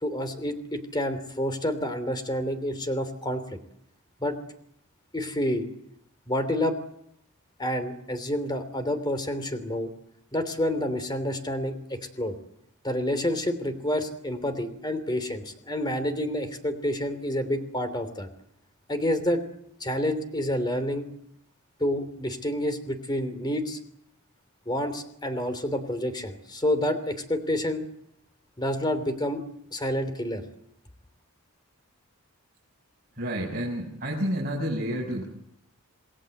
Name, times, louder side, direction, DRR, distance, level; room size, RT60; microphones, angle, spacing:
voice 1, 0.0-3.4 4.2-4.4 5.1-5.7 6.3-6.8 7.6-9.9 10.3-12.3 12.8-18.3 18.9-19.4 19.8-21.1 21.8-23.8 24.7-27.8 28.6-29.4 29.7-30.4, left 1 dB, 20° left, 10 dB, 3.1 m, -28 dB
voice 2, 33.2-35.2, equal, 40° right, -2 dB, 6.3 m, -29 dB
28.0 x 20.0 x 7.9 m, 0.73 s
head